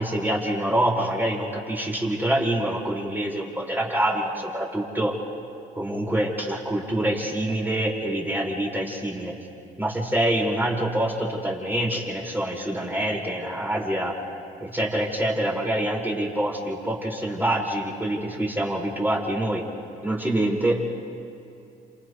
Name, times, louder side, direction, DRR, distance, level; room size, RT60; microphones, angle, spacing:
voice 1, 0.0-5.1 5.8-9.3 9.8-14.2 14.6-19.6 20.0-20.8, right 1 dB, 10° right, -3 dB, 6.0 m, -26 dB
29.0 x 28.0 x 3.4 m, 2.6 s
supercardioid pair, 60°, 20 cm